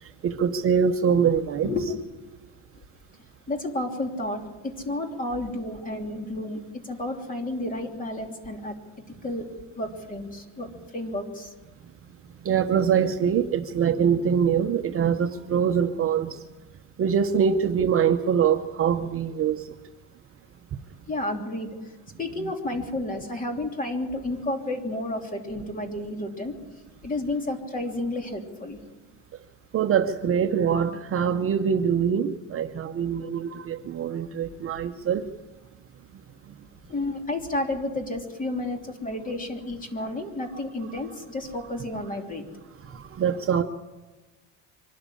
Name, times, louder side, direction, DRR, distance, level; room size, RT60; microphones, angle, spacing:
voice 1, 0.0-1.7 12.4-16.5 17.0-19.7 22.4-22.5 29.7-35.2 42.8-43.6, right 7 dB, 35° right, 6 dB, 0.9 m, -24 dB
voice 2, 3.5-9.5 9.8-11.5 21.1-21.7 22.2-26.5 27.0-28.8 36.9-42.4, left 1 dB, 20° left, 3 dB, 3.0 m, -31 dB
24.0 x 12.5 x 9.9 m, 1.2 s
cardioid pair, 140°, 37 cm